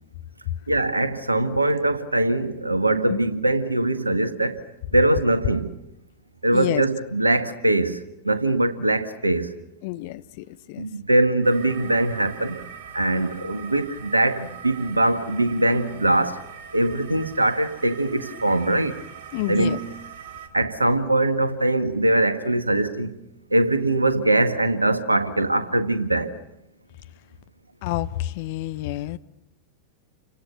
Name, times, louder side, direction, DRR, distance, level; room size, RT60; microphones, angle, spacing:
voice 1, 0.7-4.6 4.9-5.7 6.4-9.6 10.8-12.6 12.9-16.4 16.7-19.0 19.5-19.8 20.5-23.1 23.5-26.4, right 1 dB, 85° right, 1.7 m, -22 dB
voice 2, 6.5-6.8 9.8-10.9 13.1-13.2 19.3-19.8 27.8-29.2, left 16 dB, 50° left, 1.0 m, -29 dB
sound 1, 11.4-20.5, right 7 dB, 50° right, 4.1 m, -42 dB
29.5 x 25.0 x 6.7 m
figure-of-eight pair, 90°, 0 cm